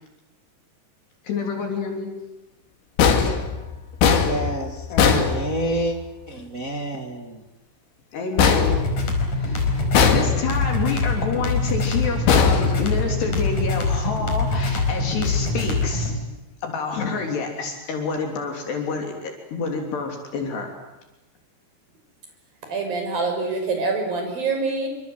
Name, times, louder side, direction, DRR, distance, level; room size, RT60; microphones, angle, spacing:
voice 1, 1.2-2.1 4.9-5.3 8.1-8.8 9.4-16.1 16.6-20.7, left 5 dB, 70° left, 3 dB, 5.4 m, -28 dB
sound 1, 3.0-6.0 8.4-9.5 9.9-10.8 12.3-13.4, left 6 dB, 85° left, 4.9 m, -20 dB
voice 2, 4.2-4.9 5.2-6.0 6.3-7.4, right 1 dB, 30° right, 4 dB, 1.5 m, -28 dB
sound 2, 8.6-16.2, left 3 dB, 45° left, 5.8 m, -24 dB
voice 3, 22.7-24.9, right 3 dB, 55° right, 4 dB, 7.7 m, -25 dB
28.0 x 26.0 x 8.0 m, 0.99 s
omnidirectional pair, 5.1 m